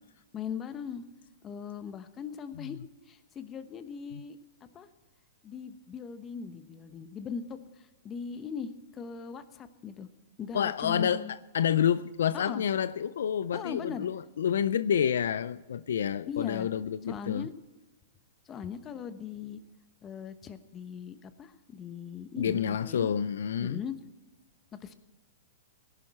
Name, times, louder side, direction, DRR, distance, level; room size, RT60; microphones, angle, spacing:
voice 1, 0.3-1.0 1.4-2.8 3.1-4.4 4.7-4.9 5.4-10.1 10.4-11.3 12.3-12.6 13.5-14.1 16.3-16.7 17.1-17.5 18.4-19.6 20.0-23.1 23.6-24.0 24.7-25.0, left 7 dB, 25° left, 1.1 m, -39 dB
voice 2, 10.5-11.3 11.5-17.5 22.4-23.8, left 8 dB, 75° left, 0.4 m, -28 dB
17.5 x 11.0 x 4.4 m
hypercardioid pair, 130°, 0 cm